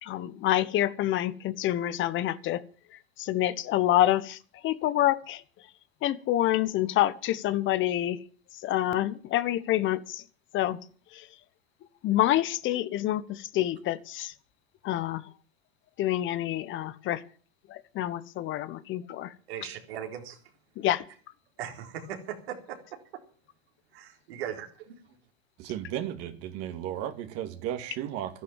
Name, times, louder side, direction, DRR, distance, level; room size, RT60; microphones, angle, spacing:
voice 1, 0.0-2.6 3.2-5.4 6.0-8.2 8.6-10.2 10.5-10.8 11.1-11.3 12.0-14.3 14.8-15.3 16.0-17.2 17.7-19.3 20.8-21.1, left 13 dB, 40° left, 1.2 m, -27 dB
voice 2, 19.5-20.4 21.6-22.8 23.9-25.0, right 9 dB, 80° right, 4.1 m, -38 dB
voice 3, 25.6-28.4, right 11 dB, 50° right, 2.3 m, -34 dB
13.0 x 11.5 x 7.4 m
supercardioid pair, 120°, 31 cm